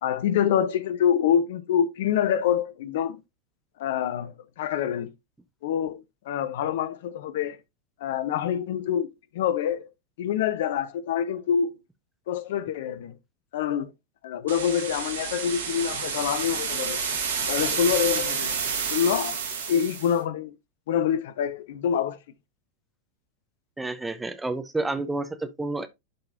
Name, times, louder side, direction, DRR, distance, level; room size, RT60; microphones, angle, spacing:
voice 1, 0.0-3.2 3.8-5.1 5.6-7.6 8.0-9.1 9.3-9.9 10.2-11.7 12.3-13.2 13.5-13.9 14.2-17.0 17.5-18.6 18.9-19.4 19.7-20.5 20.9-22.2, left 9 dB, 55° left, 0.6 m, -26 dB
sound 1, 14.5-20.1, right 6 dB, 65° right, 1.9 m, -29 dB
voice 2, 23.8-25.9, right 2 dB, 5° right, 0.8 m, -30 dB
11.5 x 3.9 x 2.7 m
figure-of-eight pair, 90°, 0 cm